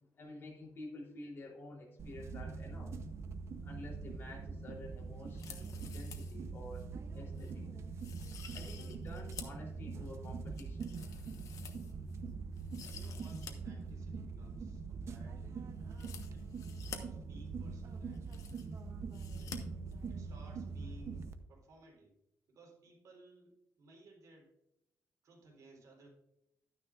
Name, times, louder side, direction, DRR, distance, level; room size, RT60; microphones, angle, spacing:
voice 1, 0.1-2.9 3.6-6.9 7.1-7.7 8.5-11.0, left 2 dB, 40° left, -3 dB, 3.3 m, -50 dB
sound 1, 2.0-21.3, right 4 dB, 50° right, 0.8 m, -43 dB
sound 2, 5.3-6.4 6.7-6.8 7.4-7.5 8.0-9.6 10.1-12.2 12.6-13.5 13.8-13.9 15.9-17.0 17.8-17.9 18.1-18.8 19.1-19.6 19.9-20.0, left 7 dB, 70° left, 1.2 m, -50 dB
voice 2, 12.8-15.7 16.3-18.3 19.4-19.6 20.1-22.1 22.5-24.5 25.2-26.1, right 2 dB, 70° right, -1 dB, 3.8 m, -59 dB
12.0 x 9.8 x 2.5 m, 0.85 s
cardioid pair, 155°, 6 cm